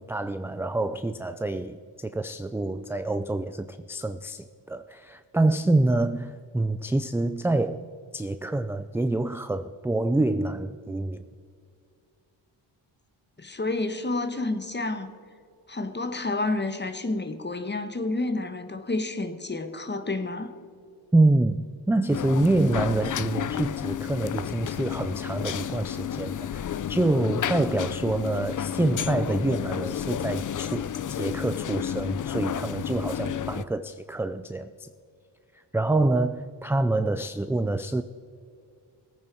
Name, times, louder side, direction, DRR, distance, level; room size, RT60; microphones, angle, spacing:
voice 1, 0.1-7.8 8.1-11.3 21.1-34.9 35.7-38.0, right 2 dB, 5° right, 0.3 m, -26 dB
voice 2, 13.4-15.1 15.7-20.5, left 2 dB, 25° left, 1.2 m, -29 dB
sound 1, 22.1-33.6, left 9 dB, 40° left, 0.5 m, -31 dB
19.0 x 8.9 x 4.5 m
cardioid pair, 75°, 47 cm